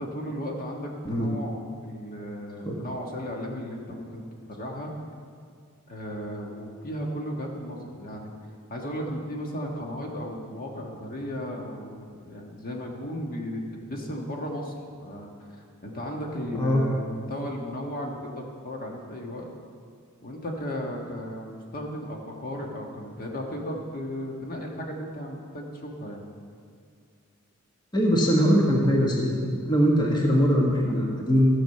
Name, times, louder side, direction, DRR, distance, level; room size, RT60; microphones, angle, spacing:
voice 1, 0.0-4.2 4.5-4.9 5.9-8.3 8.7-19.5 20.2-26.2, equal, 45° left, 0 dB, 1.5 m, -35 dB
voice 2, 27.9-31.5, equal, 20° left, -2 dB, 1.3 m, -22 dB
14.0 x 6.4 x 6.6 m, 2.3 s
head